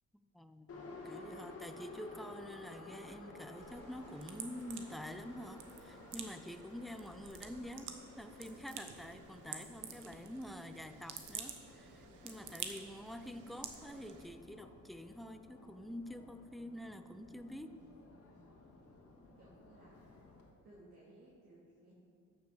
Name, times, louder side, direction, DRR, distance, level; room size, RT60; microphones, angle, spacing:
voice 1, 0.1-7.9 8.1-17.8, equal, ahead, 9 dB, 0.6 m, -47 dB
Subway metro underground, 0.7-20.5, left 2 dB, 50° left, 1.9 m, -55 dB
sound 1, 3.6-14.3, right 7 dB, 80° right, 1.1 m, -50 dB
voice 2, 12.2-12.7 18.9-19.0 19.4-20.2 20.6-21.9, right 1 dB, 50° right, -7 dB, 2.5 m, -61 dB
13.5 x 6.6 x 5.5 m, 2.2 s
cardioid pair, 90°, 30 cm